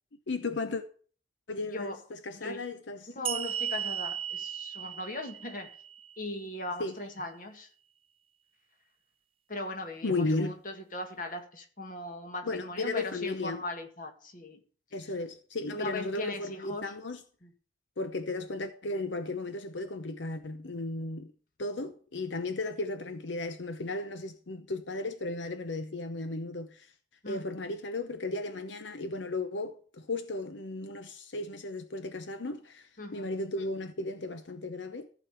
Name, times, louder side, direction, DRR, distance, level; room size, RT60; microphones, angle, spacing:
voice 1, 0.3-0.8 1.5-3.1 6.8-6.9 10.0-10.5 12.4-13.6 14.9-17.2 18.0-21.3 21.6-26.9 27.3-35.1, left 2 dB, 80° left, 0.8 m, -35 dB
voice 2, 3.2-5.7 6.2-7.7 9.5-14.6 15.7-16.9 17.4-17.5 27.2-27.4 33.0-33.3, left 2 dB, 45° left, 1.9 m, -39 dB
sound 1, 3.3-6.6, right 9 dB, 30° right, 0.5 m, -36 dB
14.5 x 5.2 x 8.1 m
head